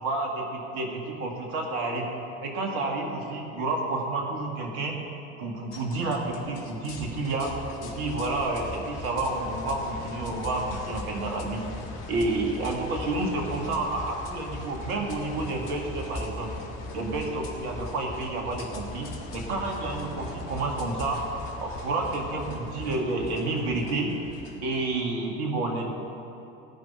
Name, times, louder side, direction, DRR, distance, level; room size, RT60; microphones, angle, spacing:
voice 1, 0.0-2.1 2.4-5.0 5.4-7.6 7.8-11.6 12.1-16.5 16.9-21.3 21.6-24.1 24.6-25.9, right 2 dB, 65° right, 1 dB, 2.2 m, -30 dB
sound 1, 5.7-24.9, left 2 dB, 55° left, 2.1 m, -39 dB
16.5 x 5.6 x 9.9 m, 2.8 s
hypercardioid pair, 65°, 38 cm